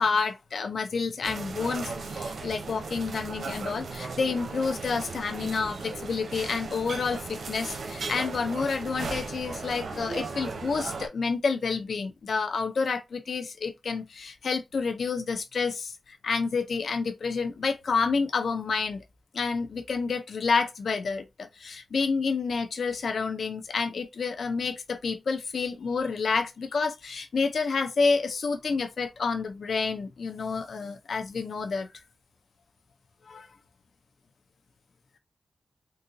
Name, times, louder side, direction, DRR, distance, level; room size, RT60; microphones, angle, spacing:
voice 1, 0.0-19.0 19.3-31.9 33.3-33.5, left 4 dB, 80° left, 0.6 m, -29 dB
sound 1, 1.2-11.1, right 4 dB, 85° right, 0.6 m, -36 dB
3.8 x 2.4 x 2.7 m
cardioid pair, 70°, 0 cm